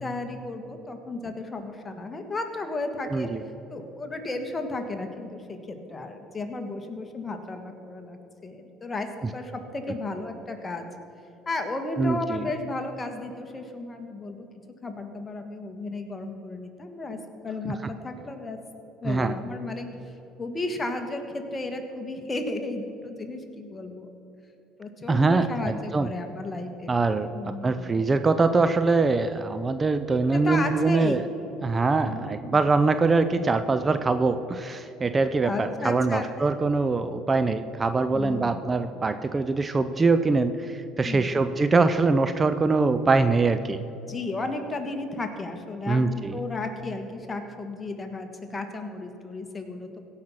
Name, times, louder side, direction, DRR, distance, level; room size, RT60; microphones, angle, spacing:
voice 1, 0.0-3.3 3.7-10.8 11.4-14.5 14.8-17.2 17.4-18.6 19.0-19.9 20.4-24.1 24.8-27.0 27.3-28.0 30.3-31.2 32.0-32.6 35.4-36.3 38.1-38.7 41.0-41.4 44.0-50.0, left 2 dB, 25° left, 5 dB, 1.6 m, -34 dB
voice 2, 3.1-3.4 12.0-12.4 17.6-17.7 19.0-19.3 25.1-26.1 26.9-27.3 27.6-31.3 31.6-43.8 45.9-46.4, right 3 dB, 25° right, 10 dB, 0.5 m, -23 dB
16.5 x 5.6 x 6.2 m, 3.0 s
supercardioid pair, 80°, 0 cm